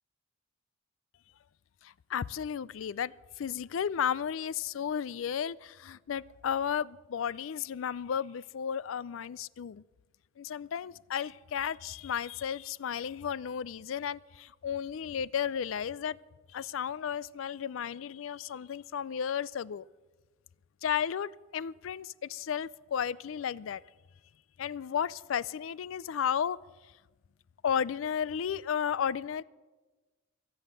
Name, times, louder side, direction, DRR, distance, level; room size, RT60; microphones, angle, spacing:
voice 1, 1.8-9.8 10.4-16.2 16.5-19.9 20.8-23.8 24.6-26.6 27.6-29.4, left 8 dB, 80° left, 21 dB, 0.4 m, -33 dB
23.0 x 7.8 x 6.8 m, 1.3 s
head